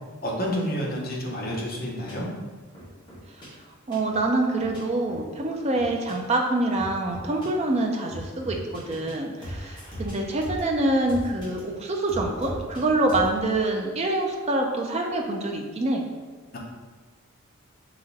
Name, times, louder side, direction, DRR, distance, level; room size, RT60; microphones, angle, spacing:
voice 1, 0.2-2.3 16.5-16.6, equal, 40° left, -4 dB, 0.9 m, -29 dB
sound 1, 1.4-1.6 2.1-2.2 2.7-3.5 3.9-4.2 4.6-4.8 5.1-5.2 5.7-6.1 6.7-7.5 8.1-9.1 9.4-11.6 12.1-12.8 13.1-13.3, equal, 20° left, 1.3 m, -38 dB
voice 2, 3.9-16.1, right 2 dB, 30° right, 1 dB, 0.4 m, -26 dB
5.1 x 2.9 x 2.7 m, 1.4 s
head